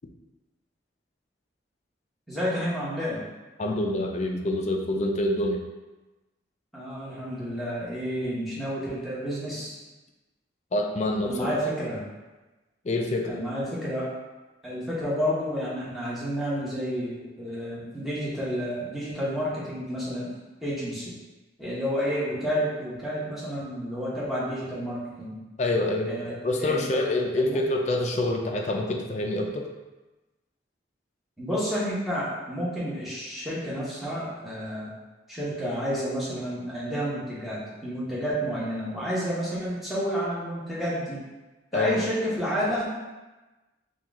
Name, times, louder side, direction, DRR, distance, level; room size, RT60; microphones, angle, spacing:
voice 1, 2.3-3.2 6.7-9.8 11.2-12.0 13.3-14.1 14.6-20.3 20.6-21.1 21.6-25.3 26.0-26.8 27.4-27.6 31.4-34.9 35.3-41.2 41.7-42.9, equal, ahead, -9 dB, 1.0 m, -30 dB
voice 2, 3.6-5.6 10.7-11.6 12.8-13.4 25.6-26.1 26.4-29.7 41.7-42.0, left 1 dB, 40° left, 2 dB, 0.4 m, -26 dB
4.5 x 2.4 x 3.5 m, 1.1 s
head